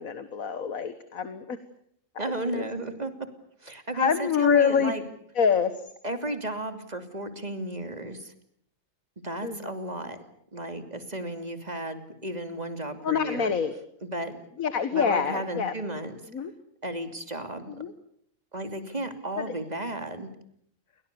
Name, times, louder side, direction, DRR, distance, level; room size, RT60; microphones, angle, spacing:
voice 1, 0.0-1.6 2.2-2.7 3.9-4.9 5.4-5.9 9.4-9.7 13.0-13.7 14.6-15.7 16.3-16.5 17.8-17.9 19.4-19.5, left 7 dB, 90° left, 11 dB, 1.9 m, -26 dB
voice 2, 2.2-3.1 3.6-5.0 6.0-8.3 9.2-10.2 10.5-13.5 14.0-14.3 14.9-16.2 16.8-17.7 18.5-20.3, right 1 dB, 30° right, 8 dB, 3.0 m, -34 dB
30.0 x 23.5 x 7.0 m, 0.70 s
omnidirectional pair, 1.4 m